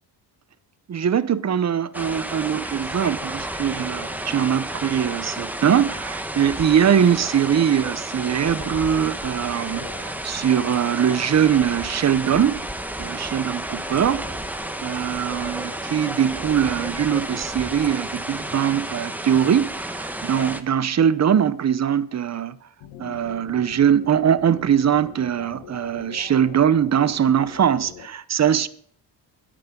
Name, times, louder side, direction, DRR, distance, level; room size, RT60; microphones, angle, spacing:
voice 1, 0.9-12.6 13.0-22.6 23.0-28.7, right 8 dB, 40° right, 0.7 m, -22 dB
sound 1, 1.9-20.6, right 1 dB, 5° right, 1.1 m, -31 dB
sound 2, 8.5-8.9 9.7-10.3 10.9-11.3 12.1-12.7 13.9-14.6 15.4-16.1 16.9-17.4, left 2 dB, 60° left, 4.7 m, -43 dB
sound 3, 22.8-28.1, left 9 dB, 90° left, 1.3 m, -42 dB
24.0 x 8.6 x 3.8 m
cardioid pair, 100°, 43 cm